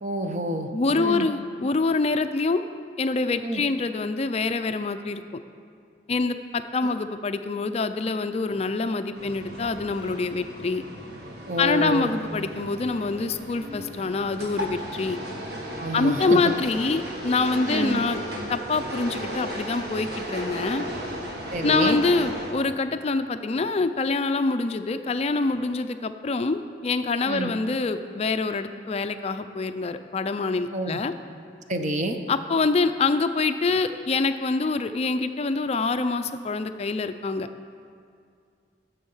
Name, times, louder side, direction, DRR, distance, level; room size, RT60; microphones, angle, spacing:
voice 1, 0.0-0.7 0.9-1.3 3.4-3.6 6.8-6.9 11.5-12.1 15.8-16.5 17.7-18.0 21.5-22.0 27.2-27.5 30.7-31.0 31.7-32.2, right 1 dB, 45° right, 6 dB, 0.8 m, -28 dB
voice 2, 0.7-2.6 3.0-5.2 6.1-10.8 11.6-15.2 15.9-18.2 18.5-20.8 21.6-31.1 32.3-37.5, left 3 dB, 35° left, 10 dB, 0.4 m, -25 dB
sound 1, 9.2-22.5, equal, 60° right, 1.6 m, -35 dB
16.5 x 7.1 x 5.5 m, 2.3 s
head